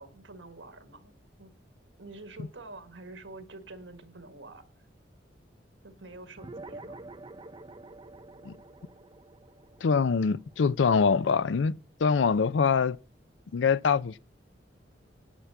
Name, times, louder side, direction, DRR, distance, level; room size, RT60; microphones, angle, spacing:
voice 1, 0.0-1.5 2.0-4.7 5.8-7.1, right 2 dB, 80° right, 1.7 m, -47 dB
sound 1, 6.4-11.2, right 2 dB, 25° right, 0.7 m, -47 dB
voice 2, 9.8-13.0 13.5-14.2, left 5 dB, 80° left, 0.4 m, -24 dB
10.0 x 5.9 x 7.6 m
head